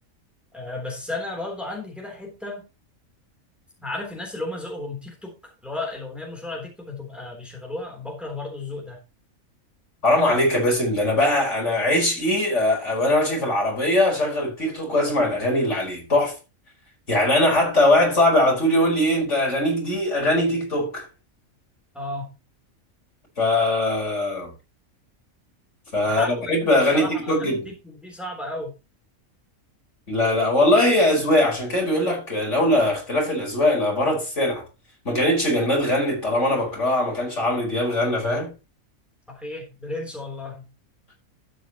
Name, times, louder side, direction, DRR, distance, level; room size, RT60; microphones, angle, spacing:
voice 1, 0.5-2.7 3.8-9.0 21.9-22.3 26.0-28.7 39.3-40.7, left 2 dB, ahead, 3.5 m, -34 dB
voice 2, 10.0-16.4 17.1-21.0 23.4-24.5 25.9-27.7 30.1-34.7 35.1-38.5, left 1 dB, 55° left, 5.4 m, -21 dB
12.5 x 9.1 x 3.1 m
omnidirectional pair, 1.4 m